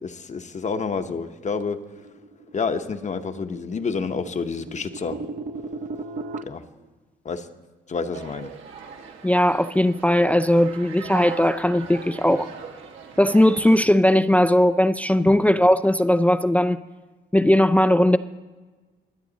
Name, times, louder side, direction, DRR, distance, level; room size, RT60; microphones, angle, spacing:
voice 1, 0.0-1.8 2.5-5.2 6.4-6.6 7.2-7.5 7.9-8.5 15.3-15.4, left 5 dB, 35° left, 0.9 m, -28 dB
sound 1, 1.7-6.4, right 3 dB, 40° right, 0.7 m, -37 dB
sound 2, 8.1-13.8, right 6 dB, 80° right, 1.8 m, -40 dB
voice 2, 9.2-12.5 13.2-16.8 17.3-18.2, left 1 dB, 5° left, 0.4 m, -18 dB
23.5 x 8.4 x 4.0 m
cardioid pair, 90°, 20 cm